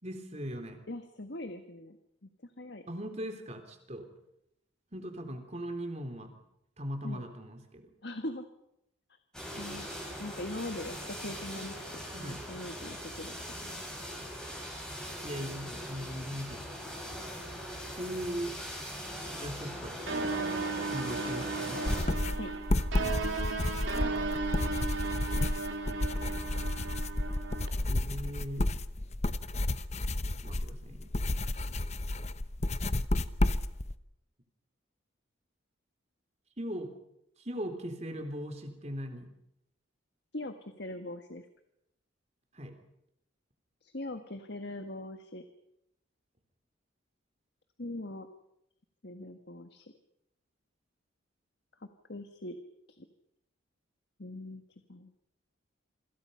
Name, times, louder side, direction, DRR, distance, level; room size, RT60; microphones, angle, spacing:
voice 1, 0.0-0.8 2.9-4.1 4.9-6.3 6.8-7.9 12.2-12.4 15.2-16.7 18.0-18.6 19.4-20.0 20.9-21.9 27.9-28.7 30.4-31.1 36.6-36.9 37.4-39.3 42.5-42.8, equal, 35° right, 6 dB, 3.7 m, -39 dB
voice 2, 0.9-2.0 2.6-2.8 7.0-7.3 8.0-8.4 9.6-9.9 10.2-13.8 22.3-22.5 40.3-41.5 43.8-45.4 47.8-48.3 49.0-49.9 52.1-52.6 53.0-53.1 54.2-54.6 54.9-55.1, left 1 dB, 55° left, 7 dB, 1.6 m, -41 dB
sound 1, 9.3-22.0, equal, 5° left, 7.3 m, -41 dB
sound 2, 20.1-27.7, right 3 dB, 70° right, 3.6 m, -35 dB
sound 3, 21.9-33.9, left 1 dB, 35° left, 0.8 m, -31 dB
28.0 x 25.0 x 5.7 m, 0.79 s
head